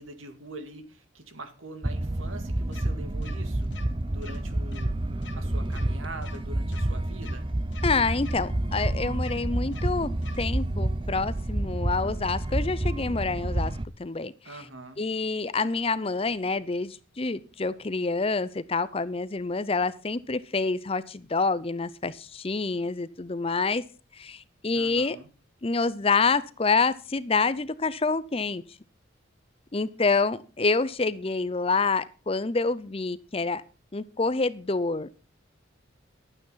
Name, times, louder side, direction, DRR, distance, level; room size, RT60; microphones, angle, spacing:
voice 1, 0.0-3.7 4.1-5.0 5.3-7.5 14.4-15.0 24.7-25.3, right 2 dB, 85° right, 9 dB, 2.1 m, -43 dB
sound 1, 1.8-13.9, right 1 dB, 25° right, 0.7 m, -29 dB
sound 2, 2.7-2.8 3.2-3.3 3.7-3.8 4.2-4.4 4.7-4.8 5.2-5.3 5.7-5.8 6.2-6.4 6.7-6.8 7.2-7.3 7.7-7.8 8.2-8.4 8.7-8.8 9.2-9.3 9.7-9.8 10.2-10.4, left 4 dB, 65° left, 2.2 m, -44 dB
voice 2, 7.8-10.1 10.4-13.7 14.0-14.3 15.0-23.8 24.2-25.2 25.6-28.6 29.7-33.6 33.9-35.1, left 4 dB, 30° left, 16 dB, 0.6 m, -27 dB
12.0 x 9.0 x 5.6 m, 0.35 s
head